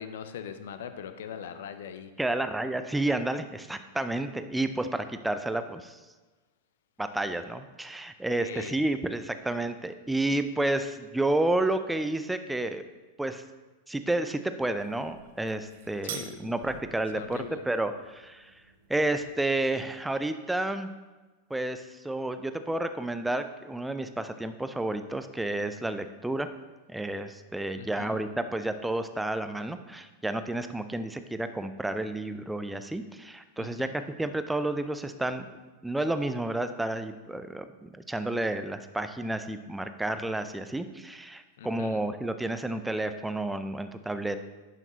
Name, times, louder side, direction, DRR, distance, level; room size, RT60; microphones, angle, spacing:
voice 1, 0.0-2.1 8.4-8.8 16.1-16.5 17.1-17.6 27.8-28.2 33.6-33.9 41.6-42.0, left 8 dB, 60° left, 9 dB, 0.6 m, -41 dB
voice 2, 2.2-6.0 7.0-12.8 13.2-13.4 13.9-18.6 18.9-20.9 21.5-26.5 26.9-35.5 35.8-44.4, right 2 dB, 5° right, 9 dB, 0.5 m, -31 dB
sound 1, 14.8-19.8, right 8 dB, 55° right, 0.8 m, -47 dB
10.5 x 5.8 x 3.0 m, 1.2 s
figure-of-eight pair, 90°, 0 cm